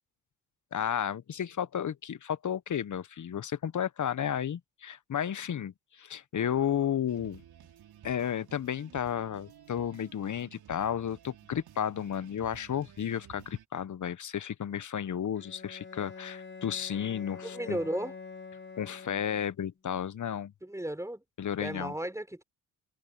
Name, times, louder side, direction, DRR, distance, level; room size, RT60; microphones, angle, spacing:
voice 1, 0.7-7.4 8.0-17.8 18.8-20.5 21.4-21.9, left 9 dB, 45° left, 1.3 m, -33 dB
sound 1, 7.1-13.6, right 11 dB, 60° right, 3.8 m, -54 dB
Bowed string instrument, 15.4-19.8, left 5 dB, 25° left, 6.0 m, -46 dB
voice 2, 17.4-18.1 20.6-21.2 21.6-22.4, right 1 dB, 5° right, 5.5 m, -34 dB
hypercardioid pair, 55°, 43 cm